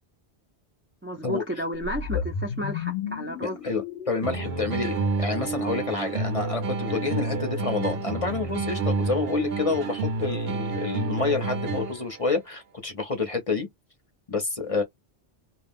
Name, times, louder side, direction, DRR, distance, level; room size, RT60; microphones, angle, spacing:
voice 1, 1.0-3.6, equal, 20° right, 0.4 m, -32 dB
sound 1, 1.7-6.1, left 7 dB, 70° left, 0.8 m, -34 dB
voice 2, 3.4-13.7 14.3-14.8, left 4 dB, 35° left, 0.7 m, -28 dB
sound 2, 4.2-12.2, right 3 dB, 65° right, 0.9 m, -29 dB
2.3 x 2.2 x 3.5 m
omnidirectional pair, 1.1 m